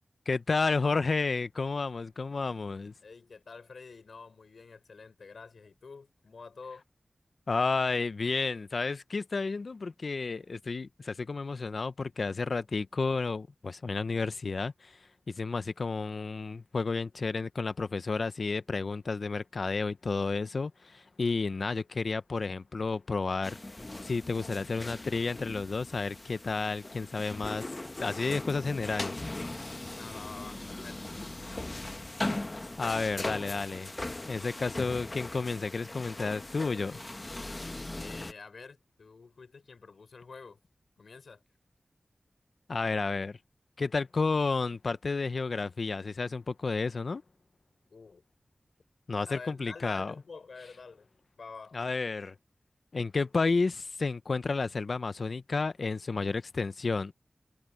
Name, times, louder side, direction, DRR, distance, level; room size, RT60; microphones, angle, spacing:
voice 1, 0.3-2.9 7.5-14.9 15.3-23.6 24.0-27.7 28.0-29.2 32.8-33.9 34.3-37.0 42.7-43.4 43.8-47.2 49.1-50.1 51.7-52.3 52.9-57.1, left 4 dB, 70° left, 0.7 m, -31 dB
voice 2, 3.0-6.8 29.9-31.2 37.9-40.6 41.0-41.4 47.9-48.2 49.3-51.1 51.4-51.8, left 4 dB, 90° left, 4.8 m, -48 dB
Lift opening and closing, 23.4-38.3, left 2 dB, 35° left, 1.1 m, -39 dB
wide cardioid pair, 55°, 0 cm